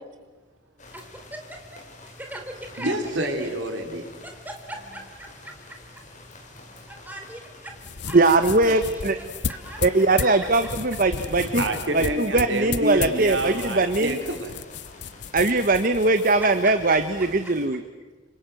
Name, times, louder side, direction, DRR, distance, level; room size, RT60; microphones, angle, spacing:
sound 1, 0.8-17.7, left 2 dB, 40° left, 5.9 m, -47 dB
voice 1, 0.9-3.0 3.4-3.5 4.2-5.5 6.9-7.7 8.1-8.2 8.6-10.3 16.4-17.0 17.4-17.5, right 1 dB, 10° right, 3 dB, 3.8 m, -40 dB
voice 2, 2.8-4.0 11.5-14.5, right 1 dB, 85° right, 4 dB, 4.3 m, -28 dB
sound 2, 7.7-17.4, left 6 dB, 65° left, 0.8 m, -35 dB
voice 3, 8.1-9.2 9.8-11.6 11.9-14.2 15.3-17.8, right 2 dB, 50° right, 9 dB, 1.3 m, -21 dB
27.5 x 26.0 x 7.8 m, 1.3 s
head